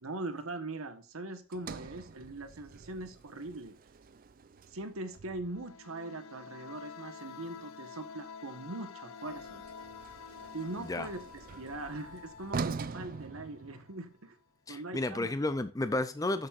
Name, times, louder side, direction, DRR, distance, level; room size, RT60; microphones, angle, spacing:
voice 1, 0.0-3.7 4.7-9.6 10.5-11.2 11.6-14.4 14.7-15.3, right 2 dB, 80° right, 1.3 m, -41 dB
Sliding door, 1.5-5.8 9.2-14.2, right 4 dB, 40° right, 0.4 m, -43 dB
sound 1, 5.4-14.0, left 6 dB, 80° left, 0.7 m, -49 dB
voice 2, 14.7-16.5, left 2 dB, 15° left, 0.5 m, -32 dB
13.0 x 6.6 x 2.5 m
head